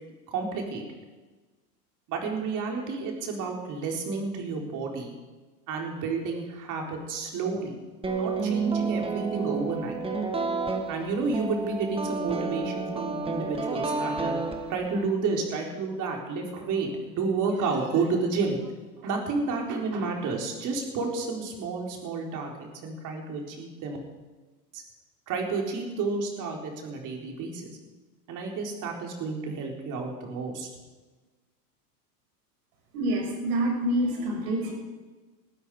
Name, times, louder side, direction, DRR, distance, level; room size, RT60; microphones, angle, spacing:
voice 1, 0.3-0.8 2.1-5.1 5.7-7.8 8.2-10.0 10.9-14.3 14.7-18.7 19.0-24.0 24.7-24.8 25.3-27.8 28.3-30.7, right 4 dB, 40° right, 1 dB, 4.1 m, -31 dB
sound 1, 8.0-15.1, right 4 dB, 10° right, 1.7 m, -30 dB
voice 2, 32.9-34.7, right 1 dB, 60° right, 1 dB, 6.2 m, -27 dB
19.0 x 13.0 x 4.9 m, 1.3 s
hypercardioid pair, 125°, 49 cm